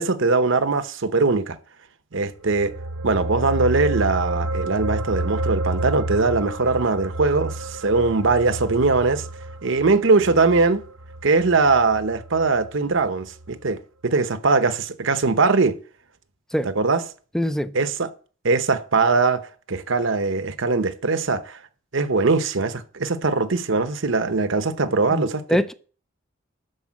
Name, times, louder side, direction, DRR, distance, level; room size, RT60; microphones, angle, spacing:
voice 1, 0.0-1.6 2.1-2.7 3.0-9.3 9.6-10.8 11.2-15.8 16.7-17.0 17.7-18.1 18.4-19.4 19.7-21.6 21.9-25.4, right 3 dB, 65° right, 0.9 m, -21 dB
sound 1, 2.3-13.1 13.4-13.5, right 2 dB, 90° right, 1.2 m, -30 dB
voice 2, 17.3-17.7 25.1-25.7, equal, 5° left, 0.5 m, -23 dB
12.0 x 4.8 x 7.4 m
head